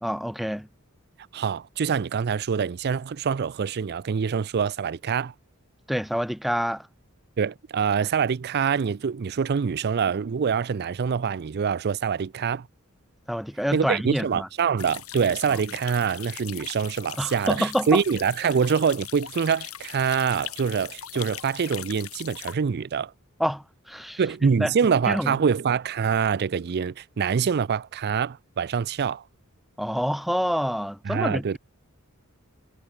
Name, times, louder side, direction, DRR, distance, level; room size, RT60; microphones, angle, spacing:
voice 1, 0.0-0.7 5.9-6.9 13.3-14.5 17.2-18.0 23.4-24.7 25.1-25.4 29.8-31.6, equal, ahead, 1.1 m, -27 dB
voice 2, 1.3-5.3 7.4-12.7 13.7-23.1 24.2-29.2 31.1-31.6, right 6 dB, 50° right, 0.4 m, -25 dB
sound 1, 14.8-22.5, left 12 dB, 80° left, 6.5 m, -40 dB
head